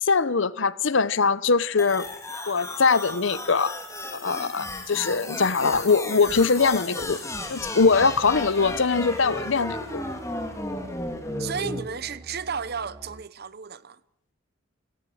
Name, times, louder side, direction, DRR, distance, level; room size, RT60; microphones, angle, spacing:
voice 1, 0.0-2.1 2.5-3.7 4.2-7.2 7.5-10.0, left 4 dB, 65° left, 0.8 m, -22 dB
sound 1, 1.8-11.8, left 2 dB, 15° left, 2.8 m, -34 dB
Musical instrument, 7.8-13.3, right 1 dB, 15° right, 1.0 m, -47 dB
voice 2, 11.4-14.0, right 6 dB, 50° right, 0.8 m, -33 dB
29.0 x 16.5 x 7.8 m
head